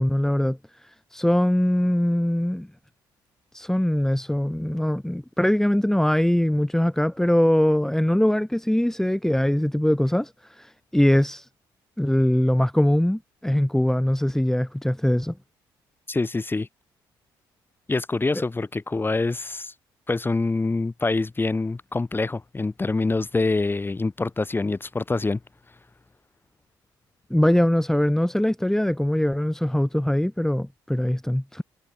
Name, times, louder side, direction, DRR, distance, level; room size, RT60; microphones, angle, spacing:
voice 1, 0.0-2.7 3.5-11.5 12.0-15.3 27.3-31.6, left 1 dB, 5° left, 1.8 m, -22 dB
voice 2, 16.1-16.7 17.9-19.7 20.1-25.4, left 3 dB, 25° left, 5.4 m, -25 dB
supercardioid pair, 65°, 9 cm